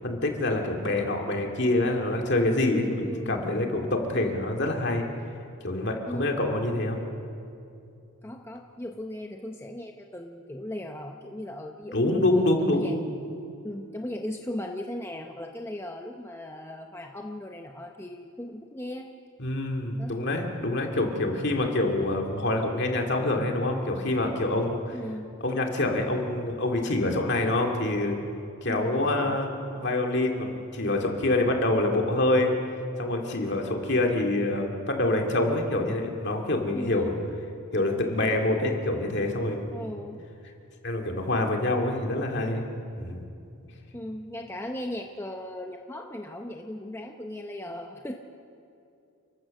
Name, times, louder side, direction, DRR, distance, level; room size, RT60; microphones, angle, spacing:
voice 1, 0.0-5.1 5.6-7.0 11.9-13.0 19.4-25.0 25.4-28.2 28.6-32.5 33.0-37.1 37.7-39.7 40.8-42.6 43.0-43.3, left 2 dB, 50° left, 2 dB, 2.3 m, -26 dB
voice 2, 3.1-3.5 6.1-6.4 8.2-12.2 12.6-13.1 13.6-19.1 20.0-20.1 24.9-25.4 28.6-29.4 36.7-37.2 39.7-40.3 43.9-48.1, left 1 dB, 10° left, 2 dB, 0.7 m, -37 dB
29.5 x 14.5 x 6.5 m, 2.6 s
head